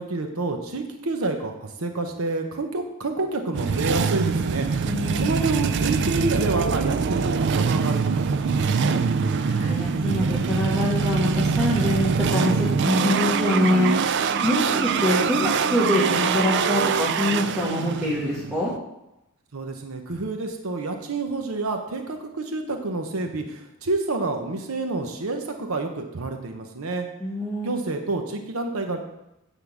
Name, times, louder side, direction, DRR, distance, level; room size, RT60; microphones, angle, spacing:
voice 1, 0.0-9.0 19.5-27.1 27.6-29.0, right 3 dB, 70° right, 5 dB, 0.9 m, -28 dB
sound 1, 3.5-18.8, right 5 dB, 50° right, 0.4 m, -24 dB
voice 2, 4.8-5.3 9.3-13.9 14.4-18.7 27.2-27.7, left 1 dB, ahead, -10 dB, 1.6 m, -24 dB
9.8 x 3.7 x 7.1 m, 0.88 s
head